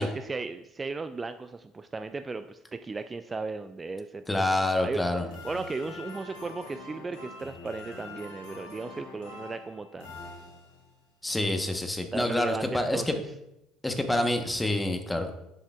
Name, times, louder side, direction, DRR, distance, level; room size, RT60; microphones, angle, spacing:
voice 1, 0.0-4.4 4.8-5.0 5.4-10.2 12.1-13.2, right 3 dB, 25° right, 9 dB, 0.3 m, -35 dB
voice 2, 4.3-5.3 11.2-13.2 13.8-15.4, left 1 dB, 10° left, 6 dB, 1.0 m, -27 dB
sound 1, 5.3-11.0, left 2 dB, 80° left, 1.7 m, -44 dB
7.1 x 7.0 x 2.4 m, 0.88 s
hypercardioid pair, 65°, 0 cm